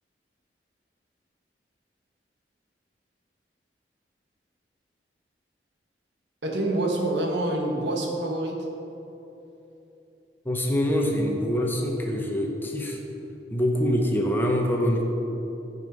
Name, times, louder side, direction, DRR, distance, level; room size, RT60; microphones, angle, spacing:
voice 1, 6.4-8.7, right 1 dB, 70° right, 0 dB, 1.5 m, -26 dB
voice 2, 10.4-13.0 13.5-15.0, equal, 10° left, 0 dB, 0.9 m, -25 dB
12.5 x 5.5 x 5.5 m, 2.9 s
head